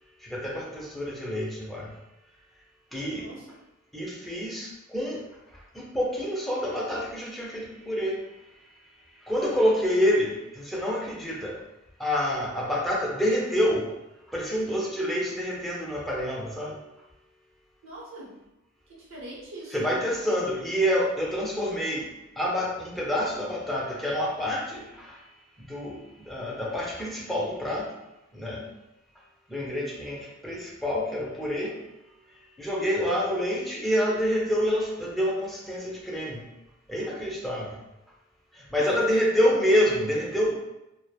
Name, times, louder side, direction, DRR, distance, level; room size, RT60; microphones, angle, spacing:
voice 1, 0.2-1.9 2.9-3.2 3.9-5.2 5.7-8.1 9.3-11.5 12.0-13.8 14.3-16.8 19.7-22.1 22.4-25.2 25.6-26.0 26.3-27.9 28.3-28.6 29.5-30.2 30.4-31.7 32.6-36.5 36.9-37.7 38.7-40.5, equal, ahead, -5 dB, 0.5 m, -27 dB
voice 2, 3.1-3.5 17.8-18.4 19.1-20.0 38.8-39.2, right 1 dB, 65° right, -4 dB, 0.8 m, -42 dB
3.0 x 2.1 x 2.2 m, 0.93 s
head